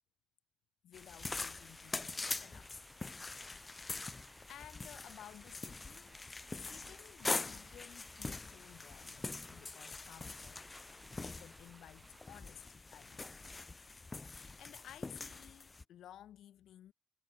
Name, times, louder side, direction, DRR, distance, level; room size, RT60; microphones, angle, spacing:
voice 1, 0.8-2.7 4.5-6.2 6.6-10.6 11.2-13.3 14.2-16.9, left 11 dB, 75° left, 1.2 m, -56 dB
sound 1, 0.9-15.8, left 3 dB, 25° left, 0.6 m, -44 dB
sound 2, 1.6-12.4, right 1 dB, 10° right, 1.5 m, -62 dB
cardioid pair, 90°, 0 cm